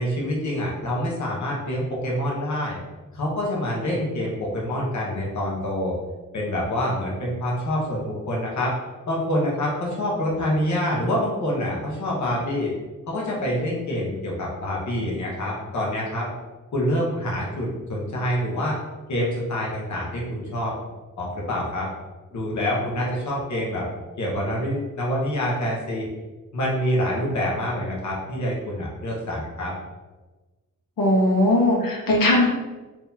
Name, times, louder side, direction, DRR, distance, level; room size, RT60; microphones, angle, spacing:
voice 1, 0.0-2.8 3.1-5.9 6.3-8.7 9.1-12.7 13.1-16.3 16.7-18.8 19.1-20.7 21.2-21.9 22.3-23.9 24.2-26.1 26.5-29.7, equal, 60° left, -3 dB, 0.9 m, -26 dB
voice 2, 31.0-32.5, left 1 dB, 80° left, -3 dB, 1.0 m, -19 dB
3.9 x 2.8 x 2.7 m, 1.2 s
wide cardioid pair, 170°, 33 cm